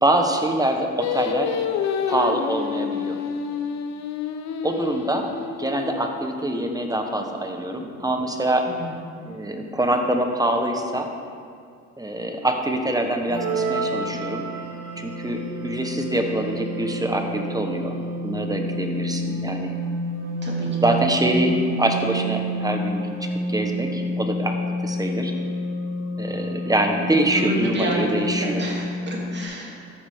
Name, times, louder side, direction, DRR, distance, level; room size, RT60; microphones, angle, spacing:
voice 1, 0.0-1.5 2.1-3.2 4.6-5.3 5.6-8.7 9.2-11.1 12.0-14.5 15.0-19.8 20.8-25.3 26.2-28.6, right 1 dB, 10° right, 4 dB, 1.2 m, -24 dB
Singing, 1.0-6.3, left 7 dB, 65° left, 0.8 m, -28 dB
sound 1, 13.3-15.0, right 4 dB, 70° right, 1.9 m, -28 dB
sound 2, 13.3-29.4, equal, 85° right, 2.0 m, -29 dB
voice 2, 27.4-29.8, right 1 dB, 35° right, -3 dB, 2.7 m, -29 dB
12.5 x 8.8 x 3.7 m, 2.3 s
cardioid pair, 90°, 30 cm